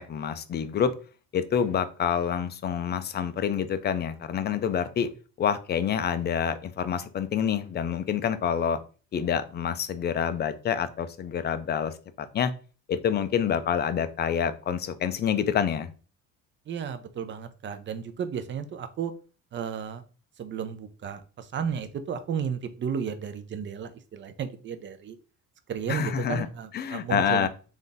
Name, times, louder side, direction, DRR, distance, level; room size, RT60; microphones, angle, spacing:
voice 1, 0.1-0.9 1.3-5.1 5.4-8.8 9.1-11.9 12.3-12.5 12.9-15.9 25.9-26.5 26.7-27.5, left 8 dB, 35° left, 11 dB, 0.4 m, -27 dB
voice 2, 16.7-19.1 19.5-20.0 20.4-25.2 25.7-27.5, right 7 dB, 35° right, 10 dB, 0.6 m, -33 dB
3.5 x 2.6 x 3.9 m, 0.37 s
cardioid pair, 120°, 31 cm